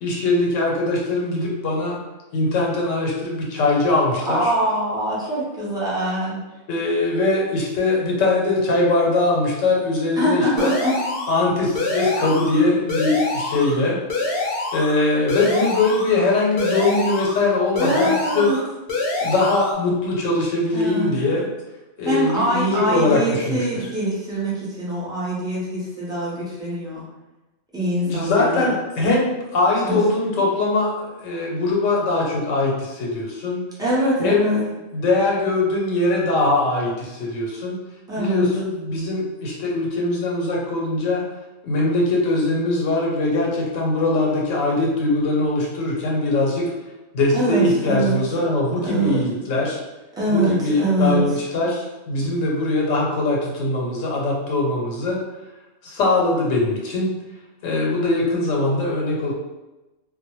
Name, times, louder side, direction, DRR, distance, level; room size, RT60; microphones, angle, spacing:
voice 1, 0.0-2.0 2.3-4.5 6.7-10.7 11.3-18.5 19.2-21.5 22.0-23.9 28.0-33.7 34.2-34.5 34.9-37.8 38.2-41.2 41.6-46.7 47.1-49.8 50.3-55.2 55.8-57.2 57.6-59.3, left 2 dB, 90° left, -2 dB, 1.0 m, -21 dB
voice 2, 4.3-6.4 10.2-10.9 17.8-18.6 20.7-21.1 22.0-27.0 27.7-28.7 29.8-30.0 33.8-34.6 38.1-38.5 47.3-48.2 48.8-49.3 50.2-51.2, right 1 dB, 5° right, -8 dB, 0.4 m, -23 dB
sound 1, 10.6-11.4 11.8-12.6 12.9-13.7 14.1-15.0 15.3-16.1 16.6-17.4 17.8-18.6 18.9-19.7, left 2 dB, 60° left, 0.6 m, -25 dB
2.2 x 2.1 x 2.9 m, 1.1 s
omnidirectional pair, 1.3 m